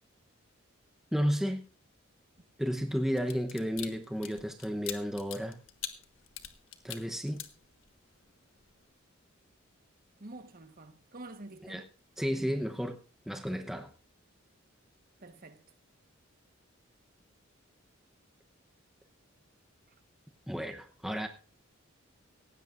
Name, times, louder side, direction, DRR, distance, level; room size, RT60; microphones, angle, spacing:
voice 1, 1.1-1.6 2.6-5.6 6.8-7.4 11.7-11.8 12.2-13.0 13.3-13.9 20.5-21.3, equal, ahead, 0.8 m, -32 dB
sound 1, 3.1-8.1 8.5-8.8, left 11 dB, 70° left, 1.5 m, -43 dB
voice 2, 10.2-11.8 15.2-15.6, right 2 dB, 45° right, 1.3 m, -47 dB
18.5 x 16.0 x 2.5 m
head